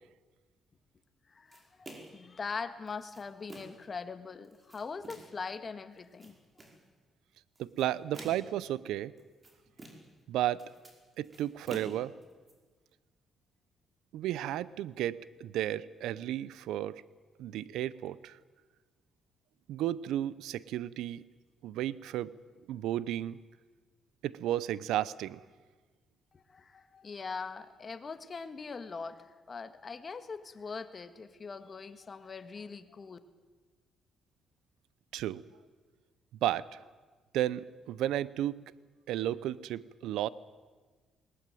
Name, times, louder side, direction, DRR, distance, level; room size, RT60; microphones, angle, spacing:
voice 1, 1.3-6.3 26.3-33.2, left 5 dB, 35° left, 9 dB, 1.7 m, -42 dB
sound 1, 1.5-2.3 2.9-3.9 4.4-5.4 6.0-6.8 7.6-8.6 9.2-10.2 10.5-12.5, right 1 dB, 25° right, 5.1 m, -50 dB
voice 2, 7.6-9.1 10.3-10.7 11.2-12.1 14.1-17.0 17.4-18.4 19.7-21.2 21.6-22.3 22.7-23.4 24.2-25.4 35.1-35.4 36.4-36.8 37.3-38.6 39.1-40.3, right 13 dB, 90° right, 19 dB, 0.6 m, -33 dB
20.0 x 19.5 x 9.2 m, 1.4 s
cardioid pair, 90°, 0 cm